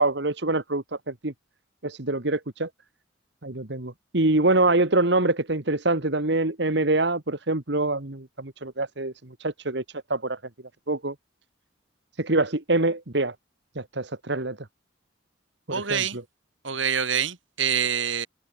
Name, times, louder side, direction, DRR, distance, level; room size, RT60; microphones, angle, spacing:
voice 1, 0.0-1.3 1.8-2.7 3.4-9.8 10.1-10.4 10.9-11.1 12.2-13.3 13.7-14.7 15.7-16.2, right 2 dB, 60° right, 1.7 m, -25 dB
voice 2, 15.7-16.2 16.6-18.3, right 7 dB, 80° right, 3.7 m, -26 dB
head